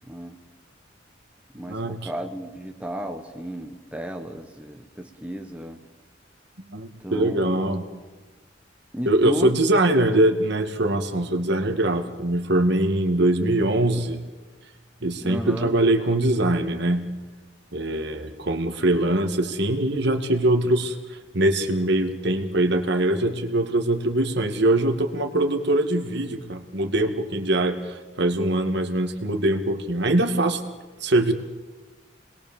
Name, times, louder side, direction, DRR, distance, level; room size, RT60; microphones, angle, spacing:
voice 1, 0.1-0.4 1.5-5.8 7.0-7.7 8.9-9.6 15.2-15.7, right 1 dB, 5° right, 3 dB, 1.4 m, -34 dB
voice 2, 1.7-2.0 6.7-7.9 9.1-14.2 15.0-17.1 17.7-21.0 21.3-30.6 31.0-31.3, right 1 dB, 60° right, 6 dB, 2.3 m, -22 dB
29.5 x 21.0 x 7.3 m, 1.3 s
head